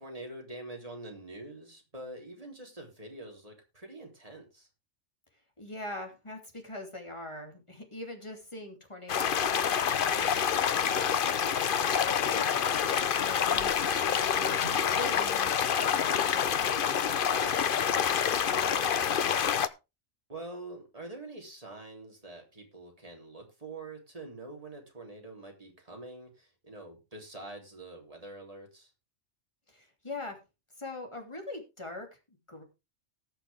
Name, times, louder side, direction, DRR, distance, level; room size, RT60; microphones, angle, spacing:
voice 1, 0.0-4.7 18.3-19.6 20.3-28.9, right 2 dB, 30° right, 1 dB, 3.5 m, -45 dB
voice 2, 5.6-12.6 12.9-18.0 29.7-30.4 30.7-32.6, left 2 dB, 25° left, 3 dB, 2.7 m, -43 dB
sound 1, 9.1-19.7, left 8 dB, 50° left, 0.8 m, -27 dB
sound 2, 13.9-16.6, right 3 dB, 80° right, 2.3 m, -48 dB
18.5 x 6.7 x 3.5 m, 0.27 s
omnidirectional pair, 1.3 m